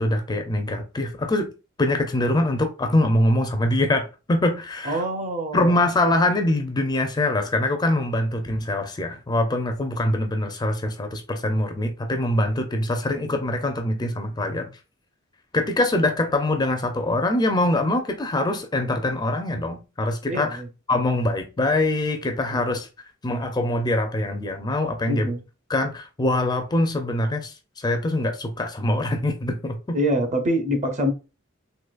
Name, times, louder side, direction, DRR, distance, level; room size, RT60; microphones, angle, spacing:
voice 1, 0.0-1.5 1.8-5.0 5.5-14.7 15.5-20.6 20.9-22.9 23.2-25.3 25.7-30.0, left 1 dB, 20° left, 0.4 m, -23 dB
voice 2, 4.8-5.7 20.3-20.7 22.5-22.7 25.1-25.4 29.9-31.1, equal, 35° right, 0.6 m, -25 dB
3.8 x 2.7 x 2.3 m
head